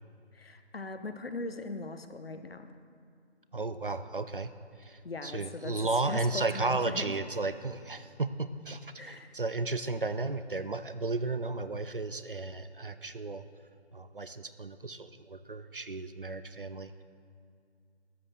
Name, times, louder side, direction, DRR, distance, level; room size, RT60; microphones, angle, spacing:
voice 1, 0.3-2.8 5.0-7.1 9.0-9.3, left 3 dB, 60° left, 9 dB, 0.9 m, -40 dB
voice 2, 3.5-4.5 4.8-13.4 13.9-17.0, right 3 dB, 50° right, 12 dB, 0.5 m, -34 dB
13.0 x 6.6 x 7.5 m, 2.3 s
figure-of-eight pair, 180°, 34 cm